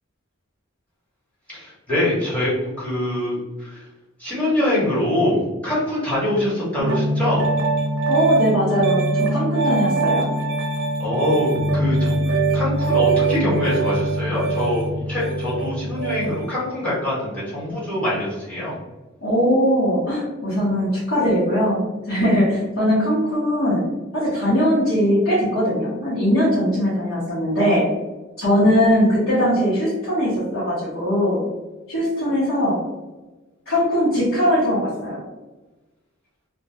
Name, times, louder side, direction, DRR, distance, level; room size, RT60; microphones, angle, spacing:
voice 1, 1.5-3.9 4.2-7.5 11.0-18.8, left 1 dB, 5° left, -9 dB, 1.0 m, -24 dB
Piano, 6.8-16.5, right 2 dB, 90° right, 0.7 m, -22 dB
voice 2, 8.1-10.3 19.2-21.8 22.1-23.8 24.1-27.9 28.4-31.4 31.9-32.8 33.7-35.2, equal, 85° left, -10 dB, 0.8 m, -20 dB
2.1 x 2.1 x 2.8 m, 1.1 s
head